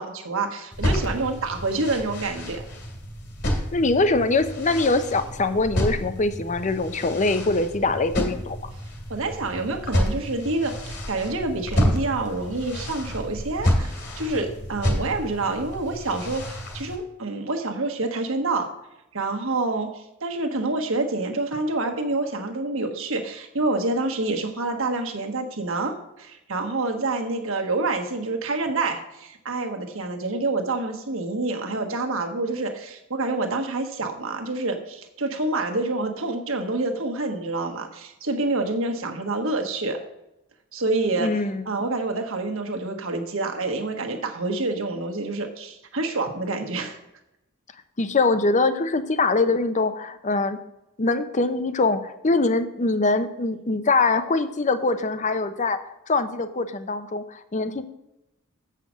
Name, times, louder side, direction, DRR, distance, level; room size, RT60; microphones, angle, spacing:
voice 1, 0.0-2.6 9.1-18.7 19.1-40.0 40.7-41.4 41.6-47.0, right 2 dB, 65° right, 4 dB, 1.4 m, -27 dB
sound 1, 0.7-17.0, equal, 55° left, 2.4 m, -29 dB
voice 2, 3.7-8.6 41.2-41.6 48.0-50.6 51.0-55.8 56.1-57.8, left 3 dB, 35° left, 11 dB, 0.7 m, -23 dB
7.6 x 5.7 x 7.3 m, 0.87 s
head